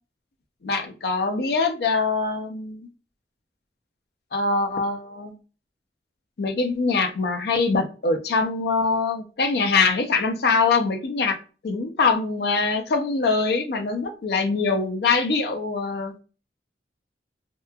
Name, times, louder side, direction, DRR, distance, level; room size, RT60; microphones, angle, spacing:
voice 1, 0.6-2.9 4.3-5.3 6.4-11.4 11.6-16.1, left 4 dB, 65° left, 5 dB, 0.5 m, -23 dB
2.9 x 2.2 x 2.2 m, 0.35 s
head